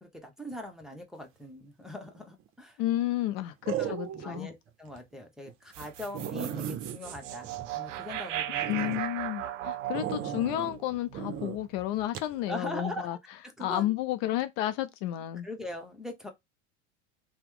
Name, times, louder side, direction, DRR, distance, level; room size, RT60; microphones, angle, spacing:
voice 1, 0.0-2.8 3.8-7.5 7.7-9.0 12.5-13.2 13.6-13.9 15.4-16.3, left 1 dB, ahead, 0.8 m, -41 dB
sound 1, 2.1-2.5 3.7-4.4 4.9-5.0 5.5-5.6 5.8-5.9 6.1-8.2 8.6-9.0 9.9-10.7 11.1-11.6 12.1-12.3, right 10 dB, 35° right, 0.6 m, -36 dB
voice 2, 2.8-4.5 8.7-13.2 13.6-15.5, left 14 dB, 55° left, 0.6 m, -31 dB
sound 2, 5.7-12.1, right 13 dB, 90° right, 0.5 m, -37 dB
2.9 x 2.1 x 3.6 m
hypercardioid pair, 100°, 36 cm